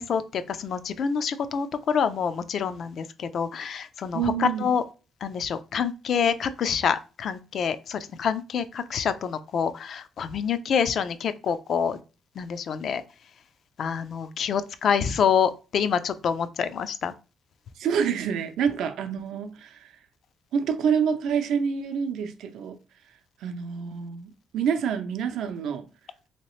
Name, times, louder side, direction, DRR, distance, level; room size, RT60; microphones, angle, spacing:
voice 1, 0.0-4.8 5.2-12.0 12.4-13.0 13.8-17.1, left 7 dB, 60° left, 0.4 m, -27 dB
voice 2, 4.1-4.7 17.8-19.9 20.5-22.8 23.4-25.8, right 7 dB, 80° right, 0.5 m, -27 dB
3.1 x 2.9 x 3.0 m
cardioid pair, 90°, 0 cm